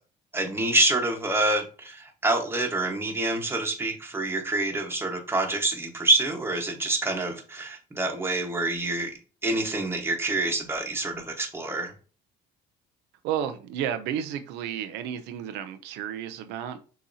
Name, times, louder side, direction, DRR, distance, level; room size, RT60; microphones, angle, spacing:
voice 1, 0.3-11.9, right 2 dB, 15° right, 1.2 m, -27 dB
voice 2, 13.2-16.8, right 9 dB, 90° right, 0.5 m, -32 dB
6.3 x 2.8 x 2.7 m
cardioid pair, 110°, 17 cm